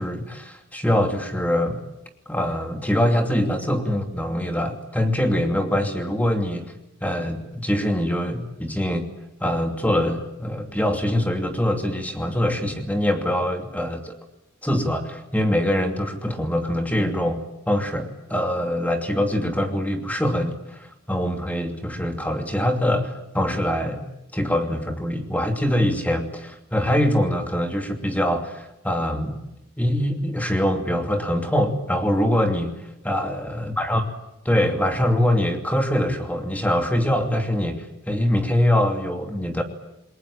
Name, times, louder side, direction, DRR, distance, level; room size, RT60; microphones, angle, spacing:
voice 1, 0.0-1.9 2.3-6.6 7.0-9.0 9.4-14.2 14.6-17.4 17.7-24.0 24.3-29.4 29.8-32.7 33.0-34.0 34.4-39.6, left 1 dB, 10° left, 5 dB, 2.7 m, -23 dB
28.5 x 22.0 x 8.8 m, 0.90 s
head